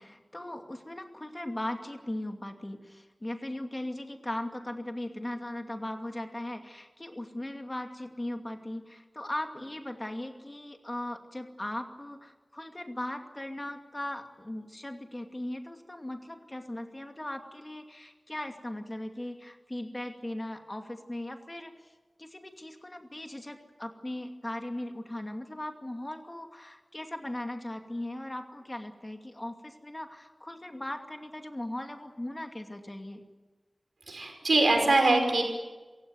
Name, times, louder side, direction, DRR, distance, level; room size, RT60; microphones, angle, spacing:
voice 1, 0.0-21.7 22.2-33.2, left 1 dB, 25° left, 5 dB, 2.5 m, -38 dB
voice 2, 34.1-35.4, right 2 dB, 80° right, 4 dB, 5.5 m, -23 dB
27.0 x 16.5 x 9.4 m, 1.3 s
wide cardioid pair, 60°, 0 cm